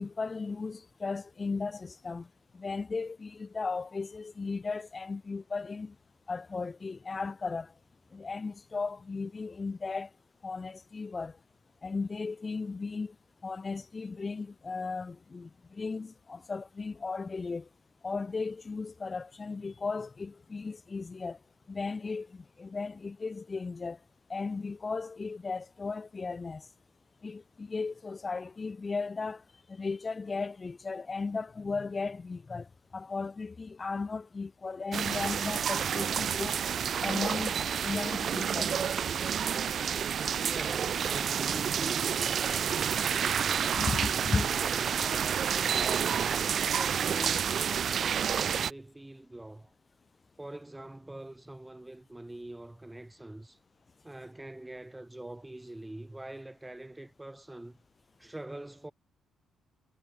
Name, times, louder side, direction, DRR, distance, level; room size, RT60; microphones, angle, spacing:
voice 1, 0.0-2.3 2.6-5.9 6.3-7.7 8.1-10.1 10.4-11.3 11.8-13.1 13.4-17.6 18.0-21.4 21.7-24.0 24.3-26.7 27.2-29.4 29.7-32.7 32.9-36.6 37.0-37.5 37.8-38.8 43.8-44.5, left 4 dB, 20° left, 1.6 m, -36 dB
sound 1, 34.9-48.7, right 8 dB, 40° right, 1.7 m, -29 dB
voice 2, 40.4-43.6 44.3-46.2 46.8-49.7 50.4-53.6 54.0-57.8 58.2-58.9, right 1 dB, 5° right, 7.6 m, -44 dB
cardioid pair, 175°, 0 cm